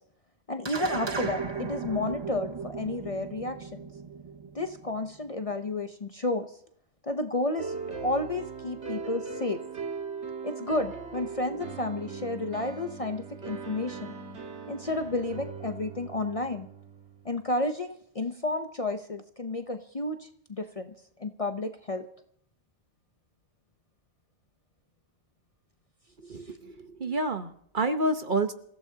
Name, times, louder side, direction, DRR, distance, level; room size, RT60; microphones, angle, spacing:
voice 1, 0.5-3.8 4.5-6.5 7.0-9.6 10.4-14.1 14.7-16.7 17.2-20.9 21.2-22.0, left 2 dB, 35° left, 7 dB, 0.7 m, -31 dB
sound 1, 0.6-5.3, right 5 dB, 25° right, 0.7 m, -36 dB
sound 2, 7.6-17.4, right 5 dB, 70° right, 1.9 m, -39 dB
voice 2, 26.3-28.5, right 2 dB, 45° right, 9 dB, 1.0 m, -29 dB
27.5 x 15.5 x 2.8 m, 0.67 s
omnidirectional pair, 1.2 m